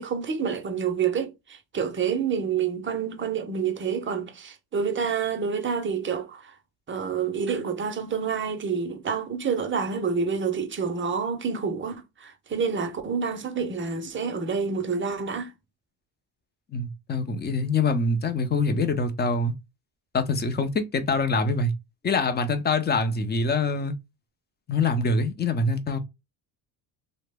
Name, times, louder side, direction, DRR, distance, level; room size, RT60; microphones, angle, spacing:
voice 1, 0.0-6.5 6.9-15.5, right 6 dB, 25° right, 0.5 m, -28 dB
voice 2, 16.7-19.5 20.1-21.7 22.0-23.9 24.7-26.0, left 3 dB, 20° left, 0.5 m, -24 dB
2.9 x 2.1 x 3.3 m
cardioid pair, 120°, 47 cm